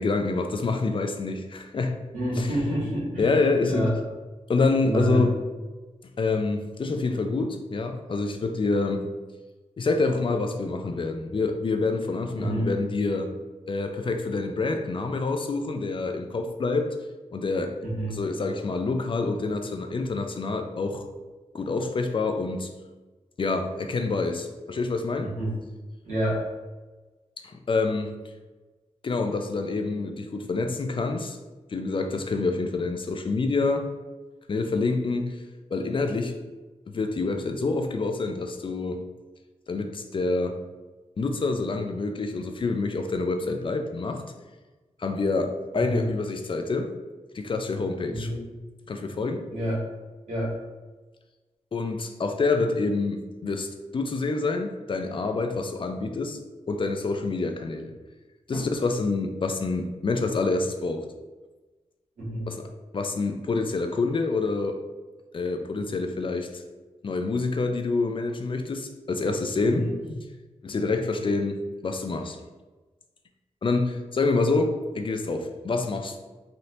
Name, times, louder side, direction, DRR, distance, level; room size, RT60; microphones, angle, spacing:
voice 1, 0.0-2.0 2.4-2.5 3.2-3.9 4.5-5.4 6.2-9.1 9.8-13.3 13.7-16.9 17.3-17.8 18.1-21.1 21.5-22.7 23.4-25.3 27.4-28.1 29.0-31.4 31.7-33.9 34.5-35.4 35.7-36.3 36.9-39.0 39.7-40.6 41.2-44.2 45.0-46.9 47.3-48.3 48.9-49.5 51.7-56.4 56.7-57.9 58.5-61.1 62.5-62.6 62.9-64.8 65.3-66.6 67.0-69.9 70.6-72.4 73.6-76.2, left 3 dB, 45° left, 6 dB, 0.4 m, -27 dB
voice 2, 2.1-3.3 3.7-3.9 4.8-5.3 12.4-12.7 17.8-18.2 25.2-25.6 26.0-26.4 45.7-46.1 48.1-48.4 49.5-49.8 50.3-50.5 58.5-58.7 62.2-62.5 69.8-69.9, equal, 90° right, -7 dB, 1.5 m, -28 dB
3.2 x 2.7 x 2.7 m, 1.2 s
cardioid pair, 60°, 12 cm